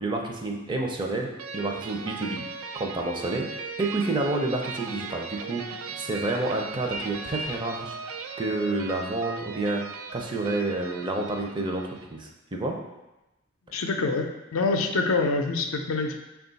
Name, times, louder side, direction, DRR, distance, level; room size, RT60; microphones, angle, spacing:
voice 1, 0.0-2.5 2.8-3.5 3.8-8.0 8.4-9.8 10.1-12.8, right 2 dB, 25° right, 1 dB, 0.5 m, -29 dB
sound 1, 1.4-12.1, right 5 dB, 90° right, 0.4 m, -38 dB
voice 2, 13.7-16.2, left 3 dB, 80° left, 4 dB, 0.5 m, -26 dB
5.7 x 2.3 x 3.9 m, 1.0 s
head